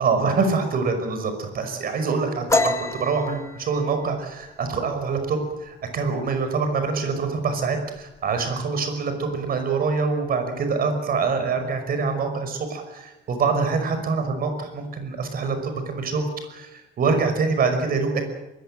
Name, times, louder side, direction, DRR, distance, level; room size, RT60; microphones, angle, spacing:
voice 1, 0.0-18.2, right 4 dB, 50° right, 7 dB, 5.5 m, -25 dB
sound 1, 2.5-5.9 6.3-6.6 7.0-7.5 7.8-8.5, left 2 dB, 15° left, 1.7 m, -28 dB
24.0 x 21.0 x 7.7 m, 1.0 s
cardioid pair, 150°, 19 cm